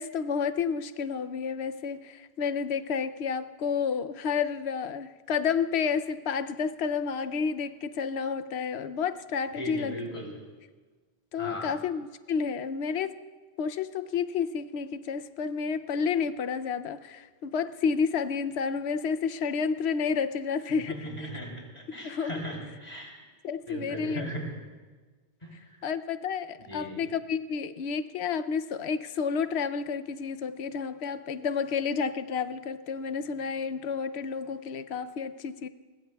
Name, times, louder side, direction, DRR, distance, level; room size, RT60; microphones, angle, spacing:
voice 1, 0.0-10.0 11.3-13.2 13.6-21.3 22.0-22.4 23.4-24.3 25.8-35.7, left 6 dB, 85° left, 12 dB, 0.9 m, -30 dB
voice 2, 9.6-10.3 11.4-11.7 20.9-23.1 23.7-24.5 25.4-25.5 26.6-27.0, equal, 40° left, -2 dB, 3.5 m, -37 dB
23.5 x 21.0 x 2.3 m, 1.4 s
omnidirectional pair, 1.1 m